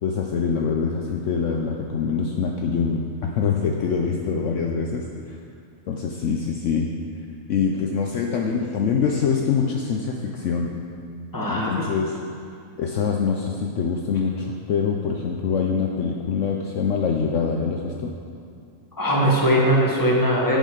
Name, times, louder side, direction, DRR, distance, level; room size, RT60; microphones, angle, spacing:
voice 1, 0.0-5.4 5.9-6.9 7.5-10.7 11.5-12.1 12.8-18.1, left 6 dB, 65° left, 1 dB, 0.9 m, -24 dB
voice 2, 11.3-11.7 19.0-20.6, equal, 15° left, -4 dB, 1.5 m, -20 dB
9.1 x 5.5 x 6.4 m, 2.4 s
omnidirectional pair, 1.4 m